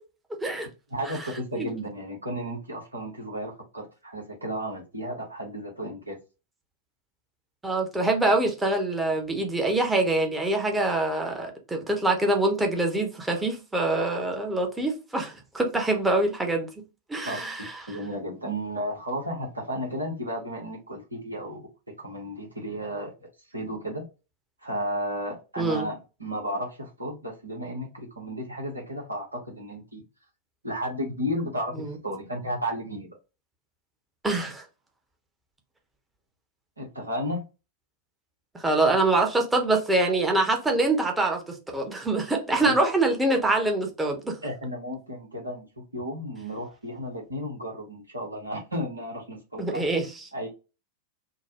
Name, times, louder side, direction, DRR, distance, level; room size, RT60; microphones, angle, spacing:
voice 1, 0.9-6.2 17.2-17.4 17.9-24.0 24.6-30.0 30.6-33.1 36.8-37.4 42.6-42.7 44.4-49.8 50.3-50.5, equal, 80° right, 1.2 m, -33 dB
voice 2, 7.6-16.7 17.1-17.6 25.6-25.9 31.8-31.9 34.2-34.6 38.5-44.4 49.6-50.0, right 2 dB, 10° right, 0.9 m, -25 dB
3.8 x 2.2 x 2.9 m
figure-of-eight pair, 90°, 0 cm